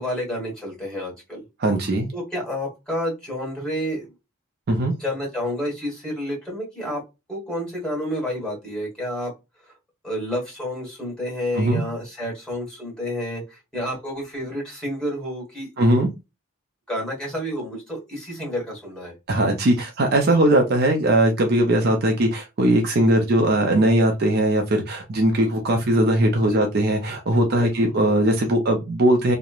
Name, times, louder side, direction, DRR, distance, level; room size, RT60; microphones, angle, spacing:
voice 1, 0.0-1.4 2.1-4.1 5.0-7.0 7.3-9.3 10.0-15.7 16.9-19.1 26.5-26.6 27.5-27.7, equal, 5° left, -3 dB, 1.3 m, -29 dB
voice 2, 1.6-2.1 4.7-4.9 11.5-11.8 15.8-16.1 19.3-29.3, right 1 dB, 45° right, 3 dB, 0.5 m, -19 dB
2.9 x 2.1 x 2.3 m, 0.24 s
head